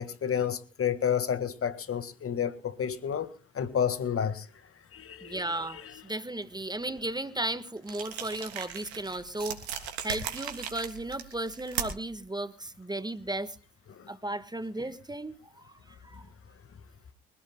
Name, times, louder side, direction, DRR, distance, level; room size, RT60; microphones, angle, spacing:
voice 1, 0.0-4.5 4.9-6.0 6.9-7.0 13.9-14.1, left 8 dB, 45° left, 1.8 m, -31 dB
voice 2, 5.2-9.6 10.0-13.6 14.1-16.2, right 1 dB, 15° right, 1.5 m, -35 dB
sound 1, 7.8-12.2, right 8 dB, 90° right, 3.1 m, -38 dB
25.0 x 16.5 x 2.3 m
hypercardioid pair, 55°, 32 cm